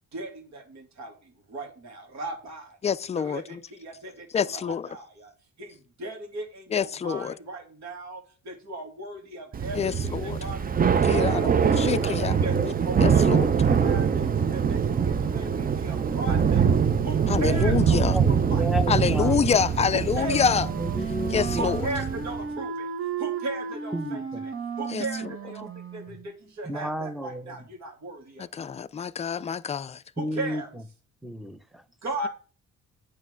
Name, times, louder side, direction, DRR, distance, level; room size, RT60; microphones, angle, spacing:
voice 1, 0.1-2.8 3.1-5.3 5.6-12.1 12.4-16.7 17.0-18.6 19.9-20.5 21.6-22.9 23.2-28.5 30.2-30.7 32.0-32.3, right 2 dB, 65° right, 2.0 m, -37 dB
voice 2, 2.8-3.6 4.3-4.9 6.7-7.3 9.8-10.4 11.0-12.4 13.0-13.5 17.3-18.1 18.9-20.7 21.3-21.8 24.9-25.0 28.5-30.0, left 7 dB, 25° left, 0.3 m, -26 dB
Thunder / Rain, 9.5-22.4, right 7 dB, 30° right, 0.5 m, -24 dB
voice 3, 18.1-19.4 20.5-21.8 23.9-24.4 26.6-27.6 30.2-30.6 31.2-31.8, equal, ahead, 0.7 m, -32 dB
Wind instrument woodwind instrument, 20.1-26.3, right 6 dB, 45° right, 1.2 m, -34 dB
9.0 x 3.3 x 6.2 m
cardioid pair, 90°, 30 cm